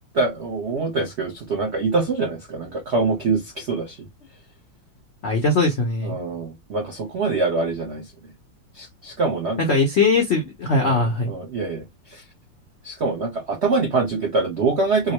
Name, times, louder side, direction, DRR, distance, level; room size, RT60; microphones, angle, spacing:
voice 1, 0.1-4.0 6.0-8.1 8.7-9.6 10.8-11.8 12.1-12.2 12.8-15.1, right 3 dB, 80° right, 0.6 m, -24 dB
voice 2, 5.2-6.2 9.7-11.3, left 3 dB, 90° left, 0.5 m, -20 dB
3.7 x 2.1 x 2.9 m
omnidirectional pair, 2.2 m